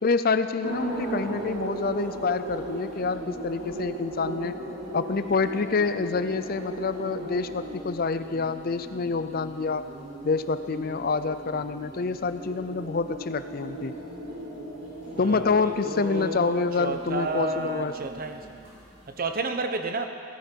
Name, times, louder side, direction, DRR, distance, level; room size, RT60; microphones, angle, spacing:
voice 1, 0.0-4.6 4.9-9.9 10.2-14.0 15.2-17.9, left 4 dB, 50° left, 11 dB, 0.5 m, -27 dB
sound 1, 0.6-19.3, right 1 dB, 85° right, 4.5 m, -37 dB
voice 2, 15.1-18.5 19.2-20.1, right 3 dB, 50° right, 6 dB, 1.0 m, -31 dB
17.5 x 15.0 x 4.6 m, 2.7 s
head